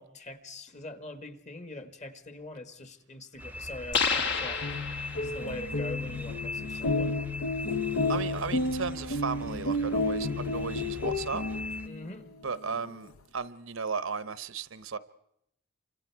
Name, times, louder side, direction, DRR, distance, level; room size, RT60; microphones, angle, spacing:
voice 1, 0.0-4.6 5.2-7.2 11.8-12.3, left 2 dB, 35° left, 1.4 m, -43 dB
sound 1, 3.4-11.9, left 2 dB, 10° right, 0.8 m, -41 dB
sound 2, 3.9-5.5, left 5 dB, 55° left, 1.2 m, -30 dB
sound 3, 4.4-12.1, left 2 dB, 70° left, 0.8 m, -31 dB
voice 2, 8.1-11.4 12.4-15.0, right 5 dB, 70° right, 0.8 m, -35 dB
28.5 x 25.5 x 4.7 m
head